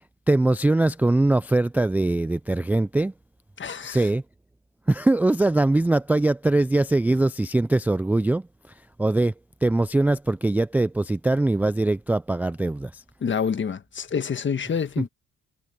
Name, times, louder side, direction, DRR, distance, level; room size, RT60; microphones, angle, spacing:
voice 1, 0.3-3.1 3.8-4.2 4.9-8.5 9.0-9.3 9.6-13.0, right 2 dB, 5° right, 0.3 m, -22 dB
voice 2, 3.6-4.1 13.2-15.1, left 6 dB, 40° left, 1.5 m, -27 dB
cardioid pair, 90°, 30 cm